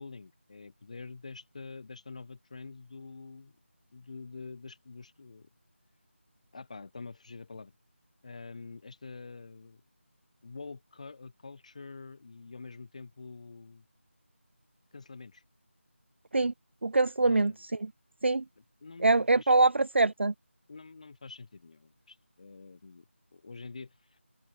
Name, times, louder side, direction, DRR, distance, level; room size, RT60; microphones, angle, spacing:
voice 1, 0.0-3.6 3.9-5.5 6.5-7.7 8.2-9.8 10.4-13.9 14.9-15.4 17.2-17.6 18.6-19.5 20.7-24.2, left 4 dB, 30° left, 2.1 m, -46 dB
voice 2, 16.8-17.9 18.2-18.4 19.0-20.3, right 3 dB, 60° right, 0.3 m, -24 dB
open air
figure-of-eight pair, 165°, 7 cm